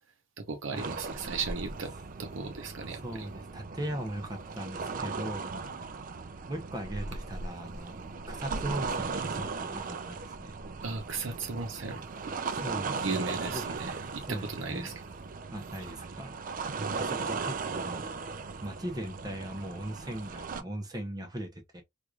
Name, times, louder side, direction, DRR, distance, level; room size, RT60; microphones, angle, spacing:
voice 1, 0.4-1.9 2.2-3.3 5.5-5.7 10.8-12.0 13.0-15.0 16.8-17.0, right 4 dB, 70° right, 0.7 m, -36 dB
sound 1, 0.8-20.6, right 4 dB, 40° right, 0.4 m, -37 dB
voice 2, 3.0-5.5 6.5-8.0 8.3-10.5 12.5-13.2 13.5-13.6 14.3-15.0 15.5-16.4 16.7-18.1 18.6-21.8, right 1 dB, 20° right, 0.7 m, -39 dB
4.6 x 2.5 x 2.3 m
head